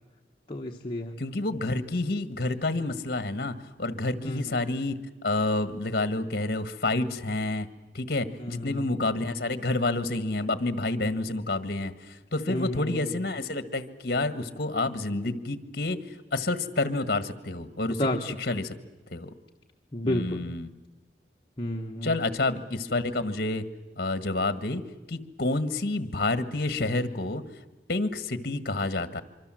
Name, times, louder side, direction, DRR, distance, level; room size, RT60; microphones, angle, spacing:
voice 1, 0.5-1.1 4.2-4.6 8.4-8.8 12.5-13.2 18.0-18.2 19.9-20.4 21.6-22.2, left 1 dB, 30° left, 2 dB, 1.2 m, -31 dB
voice 2, 1.2-7.7 7.9-16.0 16.3-18.7 19.1-19.3 20.0-20.7 22.0-23.6 24.0-24.8 25.1-27.4 27.9-29.2, left 2 dB, 55° left, 13 dB, 1.6 m, -29 dB
25.5 x 24.5 x 7.7 m, 1.2 s
head